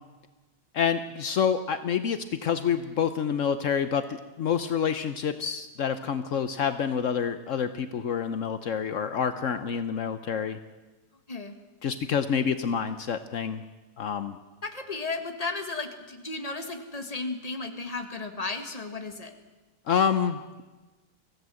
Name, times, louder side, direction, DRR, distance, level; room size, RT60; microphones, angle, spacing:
voice 1, 0.7-4.1 4.4-10.6 11.8-13.6 14.0-14.4 19.9-20.6, left 7 dB, 70° left, 10 dB, 0.7 m, -27 dB
voice 2, 14.6-19.3, left 3 dB, 20° left, 6 dB, 1.6 m, -34 dB
25.0 x 16.5 x 7.7 m, 1.2 s
omnidirectional pair, 2.4 m